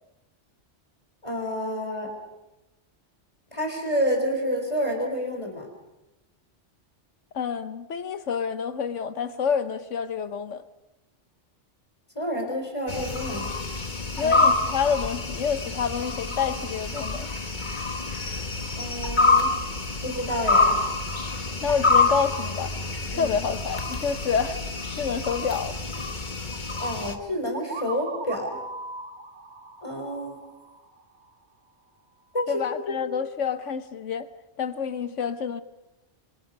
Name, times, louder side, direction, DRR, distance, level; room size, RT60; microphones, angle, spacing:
voice 1, 1.2-2.2 3.5-5.7 12.1-13.5 14.2-14.4 18.8-19.6 20.0-20.8 23.1-23.4 26.8-28.6 29.8-30.4 32.3-32.8, equal, 25° left, 4.3 m, -29 dB
voice 2, 7.3-10.6 14.2-17.3 21.6-22.7 23.1-25.8 32.5-34.3 34.6-35.6, left 6 dB, 85° left, 1.4 m, -28 dB
sound 1, 12.9-27.2, left 3 dB, 40° left, 1.7 m, -26 dB
sound 2, 27.5-31.3, right 3 dB, 65° right, 1.8 m, -39 dB
26.5 x 25.0 x 5.4 m
omnidirectional pair, 1.2 m